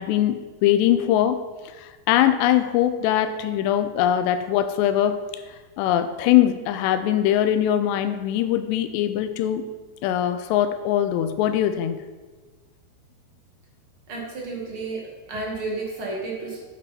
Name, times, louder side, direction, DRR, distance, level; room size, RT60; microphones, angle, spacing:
voice 1, 0.0-1.4 1.8-5.2 5.8-9.6 10.0-12.0, left 11 dB, 85° left, 10 dB, 2.7 m, -21 dB
voice 2, 14.1-15.0 15.3-16.6, right 3 dB, 50° right, -2 dB, 1.7 m, -31 dB
9.5 x 8.2 x 4.2 m, 1.3 s
omnidirectional pair, 5.0 m